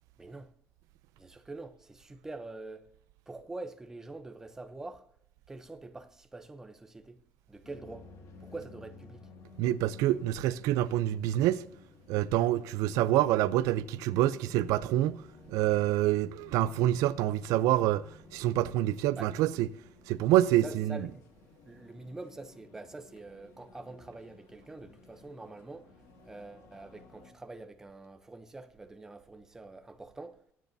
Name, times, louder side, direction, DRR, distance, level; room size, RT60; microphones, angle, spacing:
voice 1, 0.2-0.5 1.2-2.9 3.3-5.1 5.5-7.2 7.5-8.1 8.4-9.2 19.2-19.4 20.6-21.2 21.7-25.9 26.3-30.4, right 2 dB, 10° right, 0.7 m, -45 dB
sound 1, 7.6-27.3, left 3 dB, 60° left, 2.1 m, -55 dB
voice 2, 9.6-11.6 12.1-15.2 15.5-18.0 18.3-19.7 20.1-21.0, right 13 dB, 80° right, 0.5 m, -26 dB
21.0 x 9.4 x 2.7 m
cardioid pair, 170°, 6 cm